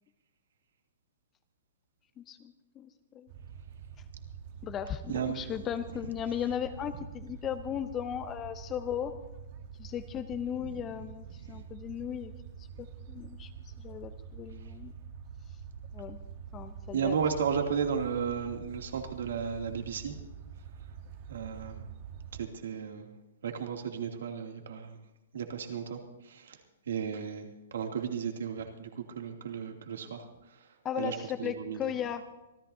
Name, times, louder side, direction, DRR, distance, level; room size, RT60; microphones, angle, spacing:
voice 1, 2.2-2.9 3.1-3.3 4.6-9.2 9.8-12.3 12.6-13.5 13.8-14.9 15.9-16.2 16.5-17.2 30.8-32.2, left 9 dB, 20° left, 9 dB, 0.7 m, -36 dB
sound 1, 3.3-22.5, right 7 dB, 40° right, 1.2 m, -46 dB
voice 2, 5.1-5.5 11.4-11.6 16.9-20.2 21.3-21.8 22.3-23.1 23.4-25.0 25.3-26.6 26.9-30.2 31.0-31.9, right 7 dB, 80° right, 3 dB, 2.6 m, -34 dB
26.0 x 14.5 x 2.8 m, 0.99 s
hypercardioid pair, 160°, 0 cm